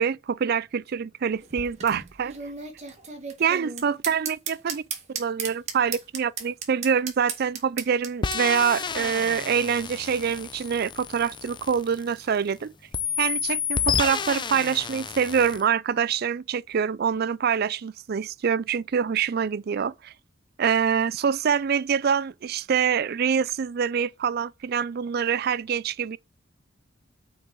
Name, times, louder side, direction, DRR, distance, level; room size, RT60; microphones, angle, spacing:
voice 1, 0.0-2.3 3.4-4.8 5.2-12.7 13.2-20.1 20.6-26.2, right 7 dB, 50° right, 0.4 m, -25 dB
sound 1, 1.3-8.4, right 6 dB, 35° right, 1.8 m, -35 dB
sound 2, 8.2-12.5 12.9-15.6, left 6 dB, 25° left, 0.5 m, -30 dB
6.9 x 4.6 x 6.7 m
head